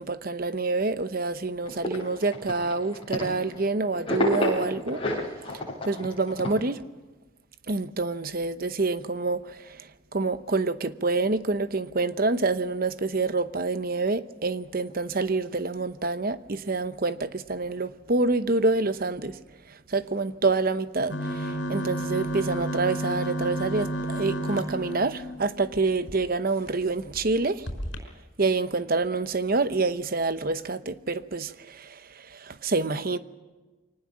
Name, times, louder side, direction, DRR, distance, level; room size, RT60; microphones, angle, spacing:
voice 1, 0.0-5.0 5.8-6.8 7.7-9.4 10.1-19.3 19.9-27.6 28.4-31.9 32.4-33.2, right 3 dB, 45° right, 0.9 m, -27 dB
sound 1, 1.6-3.6 3.9-6.5, left 1 dB, 25° left, 7.3 m, -30 dB
sound 2, 21.1-26.1 26.7-26.8 27.0-27.2 27.7-28.0, right 1 dB, 60° left, 5.1 m, -31 dB
24.0 x 19.0 x 7.4 m
head